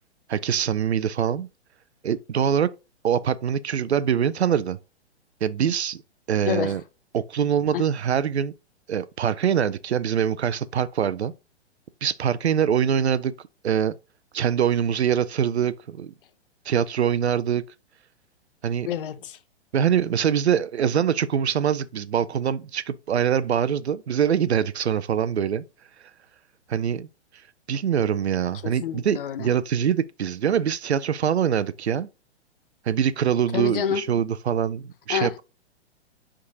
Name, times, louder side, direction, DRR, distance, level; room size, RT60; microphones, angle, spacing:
voice 1, 0.3-1.5 2.0-2.7 3.0-4.8 5.4-6.0 6.3-6.8 7.1-8.5 8.9-11.3 12.0-13.3 13.6-14.0 14.3-16.1 16.7-17.6 18.6-18.9 19.7-25.6 26.7-27.1 27.7-32.1 32.9-35.4, right 8 dB, 70° right, 0.6 m, -24 dB
voice 2, 18.8-19.4 28.6-29.5 33.5-34.0 35.1-35.4, left 9 dB, 50° left, 0.7 m, -28 dB
9.3 x 3.7 x 2.7 m
figure-of-eight pair, 115°, 34 cm